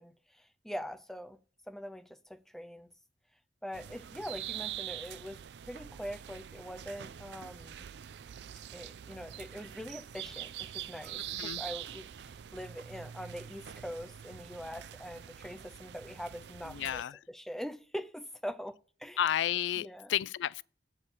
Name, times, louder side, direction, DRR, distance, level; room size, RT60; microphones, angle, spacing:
voice 1, 0.0-1.4 1.7-2.9 3.6-7.8 8.7-17.0 17.3-19.2 19.8-20.1, equal, ahead, 0.3 m, -43 dB
sound 1, 3.7-17.0, right 11 dB, 65° right, 0.4 m, -44 dB
voice 2, 11.3-11.6 16.6-17.2 19.2-20.6, left 11 dB, 85° left, 0.3 m, -32 dB
8.1 x 4.4 x 7.2 m
head